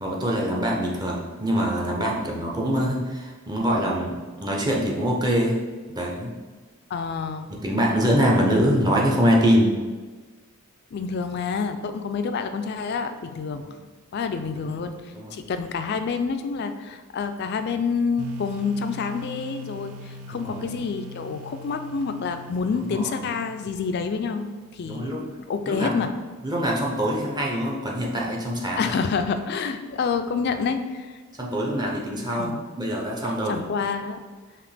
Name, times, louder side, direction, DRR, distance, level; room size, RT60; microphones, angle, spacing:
voice 1, 0.0-5.6 5.9-6.3 7.5-9.7 13.5-13.7 15.1-15.3 20.3-20.7 22.8-23.1 24.9-25.2 25.7-26.0 26.4-28.9 31.4-33.6, equal, 20° right, -2 dB, 0.6 m, -24 dB
voice 2, 6.9-7.5 10.9-13.6 14.1-15.0 15.3-24.5 24.7-25.2 25.5-26.1 28.8-31.2 32.3-32.6 33.5-34.2, left 5 dB, 50° left, 8 dB, 0.3 m, -28 dB
sound 1, 18.2-25.0, left 1 dB, 80° right, 0.4 m, -42 dB
5.0 x 2.9 x 3.2 m, 1.4 s
head